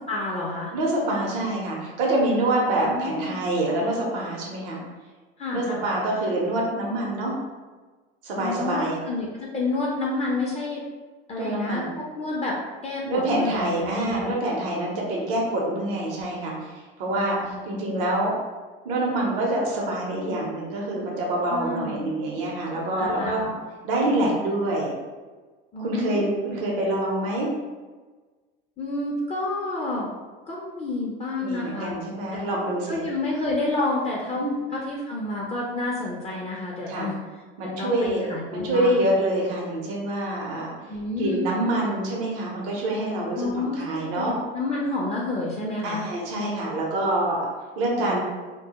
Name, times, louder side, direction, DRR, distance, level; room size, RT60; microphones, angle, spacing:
voice 1, 0.1-0.7 2.8-3.4 5.4-5.8 8.4-10.8 11.3-11.9 12.1-12.6 12.8-14.3 17.4-17.6 21.5-22.2 23.0-23.5 25.7-26.5 28.8-30.1 30.5-32.0 32.3-32.4 32.9-34.4 34.7-37.2 37.8-39.0 40.9-41.5 43.3-46.0 48.0-48.2, left 2 dB, 20° left, -4 dB, 0.5 m, -29 dB
voice 2, 0.7-4.8 5.5-7.3 8.2-9.0 11.4-11.9 13.0-18.3 18.8-23.5 23.8-24.9 25.8-27.5 31.4-33.0 34.3-34.5 36.9-37.1 37.6-40.7 41.2-44.3 45.8-47.5 47.8-48.2, right 1 dB, 70° right, -2 dB, 0.7 m, -26 dB
2.2 x 2.0 x 2.8 m, 1.3 s
hypercardioid pair, 80°, 29 cm